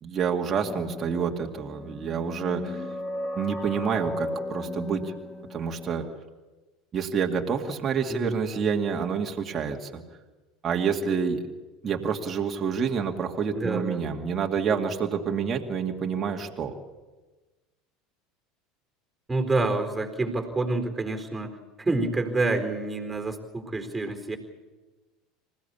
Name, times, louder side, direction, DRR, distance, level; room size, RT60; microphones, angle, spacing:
voice 1, 0.0-2.8 3.4-5.1 5.5-6.1 6.9-10.0 10.6-11.4 11.8-16.7, right 6 dB, 30° right, 2 dB, 2.3 m, -28 dB
sound 1, 0.6-6.1, left 1 dB, 15° left, 2.9 m, -36 dB
voice 2, 13.5-14.0 19.3-21.5 21.8-24.4, right 2 dB, 10° right, 5 dB, 4.2 m, -28 dB
27.0 x 16.0 x 8.5 m, 1.2 s
figure-of-eight pair, 70°, 0 cm